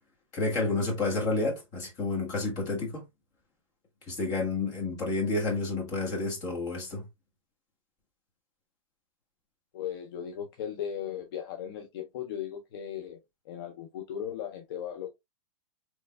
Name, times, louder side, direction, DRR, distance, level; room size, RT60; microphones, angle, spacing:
voice 1, 0.3-3.0 4.1-7.1, left 3 dB, 20° left, 1.2 m, -30 dB
voice 2, 9.7-13.2 13.5-15.1, left 9 dB, 45° left, 0.6 m, -37 dB
3.3 x 3.1 x 2.2 m
hypercardioid pair, 160°, 17 cm